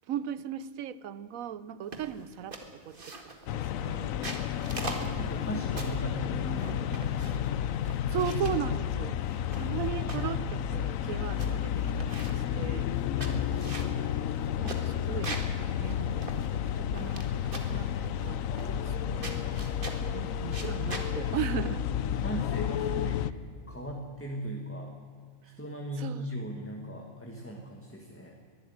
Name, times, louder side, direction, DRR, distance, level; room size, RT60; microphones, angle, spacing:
voice 1, 0.1-4.2 8.1-9.2 9.6-12.9 14.6-15.4 15.8-18.4 18.8-19.8 20.1-21.8 25.5-25.6 26.0-26.3, right 9 dB, 85° right, 17 dB, 1.2 m, -37 dB
sound 1, 1.9-2.2 2.5-3.5 4.0-6.1 6.6-7.5 7.8-8.6 9.3-10.3 10.8-10.9 11.1-11.5 11.8-12.5 13.0-15.6 15.9-16.0 16.2-17.2 17.5-17.8 18.6-19.0 19.2-20.1 20.5-21.1, right 3 dB, 40° right, 2.1 m, -41 dB
sound 2, 3.5-23.3, left 9 dB, 80° left, 1.1 m, -31 dB
voice 2, 4.7-7.5 10.0-10.5 13.2-13.5 22.2-23.3 23.7-24.9 25.4-28.4, right 1 dB, 10° left, 1 dB, 1.7 m, -38 dB
22.0 x 12.5 x 9.6 m, 2.1 s
omnidirectional pair, 1.4 m